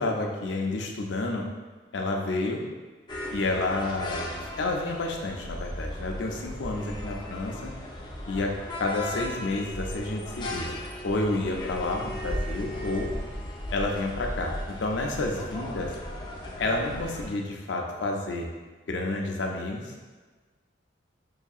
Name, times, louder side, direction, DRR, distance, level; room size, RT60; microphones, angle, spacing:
voice 1, 0.0-1.5 1.9-2.6 3.3-7.7 8.3-8.5 8.8-10.7 11.0-13.1 13.7-15.9 16.6-18.5 18.9-19.9, left 2 dB, 75° left, 1 dB, 0.6 m, -30 dB
sound 1, 3.1-17.3, left 1 dB, 25° left, 0.5 m, -36 dB
5.6 x 2.7 x 2.4 m, 1.4 s
head